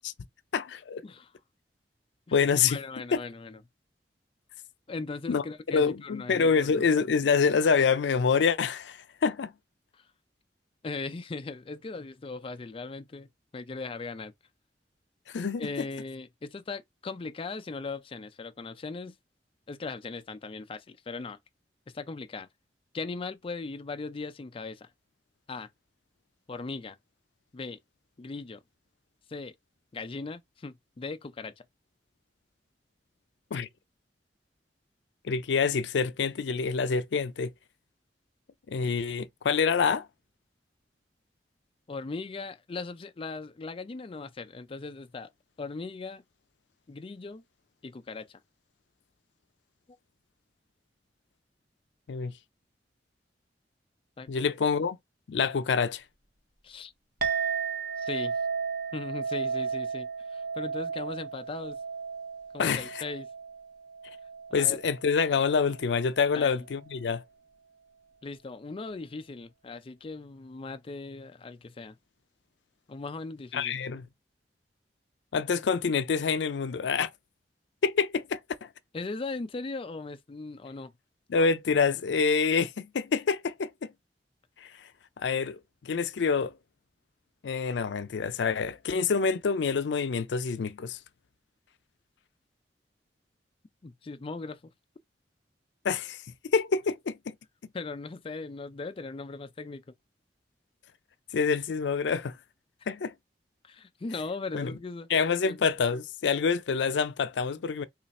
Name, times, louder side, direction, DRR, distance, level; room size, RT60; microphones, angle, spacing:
voice 1, 0.5-1.0 2.3-2.8 3.1-3.2 5.3-5.4 5.7-9.5 15.3-15.6 33.5-33.7 35.2-37.5 38.7-40.1 52.1-52.3 54.3-55.0 55.3-56.0 62.6-62.9 64.5-67.2 73.5-74.0 75.3-77.1 77.8-78.4 81.3-83.9 84.6-84.7 85.2-86.5 87.4-91.0 95.8-96.2 96.5-97.3 101.3-102.3 102.9-103.1 104.5-104.7 105.1-107.8, left 5 dB, 90° left, 0.4 m, -26 dB
voice 2, 2.7-3.6 4.9-6.8 9.9-10.1 10.8-13.3 13.5-14.3 15.6-19.2 19.7-21.4 21.9-22.5 22.9-24.9 25.5-25.7 26.5-27.0 27.5-27.8 28.2-28.6 29.3-29.5 29.9-31.7 41.9-45.3 45.6-46.2 46.9-47.4 47.8-48.4 49.9-50.0 54.2-54.3 56.6-56.9 58.0-58.4 58.9-61.8 62.5-63.3 64.5-64.8 66.3-66.7 68.2-72.0 72.9-73.8 78.9-80.9 93.8-94.7 97.7-99.8 103.6-105.1 105.4-105.6, left 3 dB, 30° left, 0.4 m, -38 dB
Chink clink, 57.2-65.9, right 5 dB, 60° right, 0.9 m, -34 dB
3.1 x 2.5 x 4.1 m
head